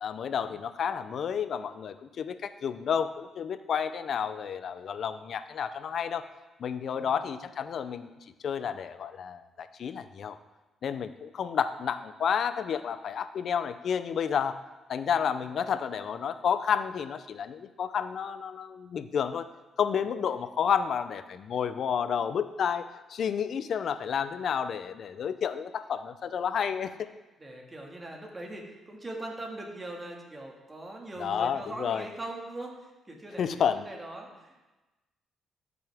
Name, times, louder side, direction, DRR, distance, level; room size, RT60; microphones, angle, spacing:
voice 1, 0.0-6.2 6.6-8.1 8.4-10.4 10.8-14.6 14.9-19.5 19.8-22.8 23.1-26.9 31.2-32.1 33.4-33.9, left 7 dB, 60° left, 12 dB, 0.5 m, -30 dB
voice 2, 6.9-7.3 15.4-15.7 27.4-34.7, right 1 dB, 20° right, 0 dB, 2.0 m, -41 dB
13.5 x 6.1 x 3.6 m, 1.1 s
cardioid pair, 90°, 0 cm